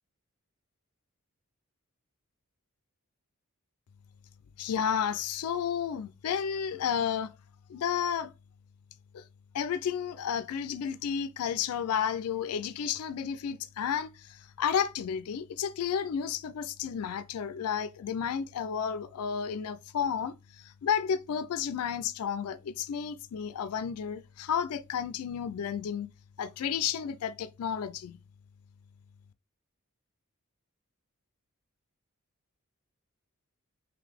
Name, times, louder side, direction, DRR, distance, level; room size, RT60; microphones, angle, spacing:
voice 1, 4.6-7.3 7.7-8.3 9.1-9.2 9.5-26.1 26.4-28.2, left 7 dB, 85° left, 0.3 m, -32 dB
3.8 x 3.2 x 3.3 m
head